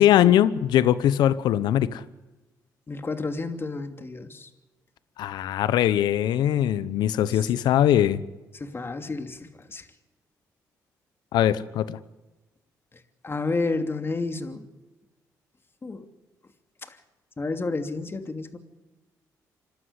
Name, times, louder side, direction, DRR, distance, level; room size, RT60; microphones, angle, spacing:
voice 1, 0.0-2.0 5.2-8.2 11.3-12.0, left 11 dB, 80° left, 16 dB, 1.0 m, -21 dB
voice 2, 2.9-4.5 7.3-7.4 8.5-9.9 12.9-14.7 15.8-16.1 16.9-17.0 17.4-18.6, left 3 dB, 30° left, 7 dB, 2.8 m, -31 dB
27.0 x 12.5 x 9.8 m, 1.1 s
supercardioid pair, 60°, 7 cm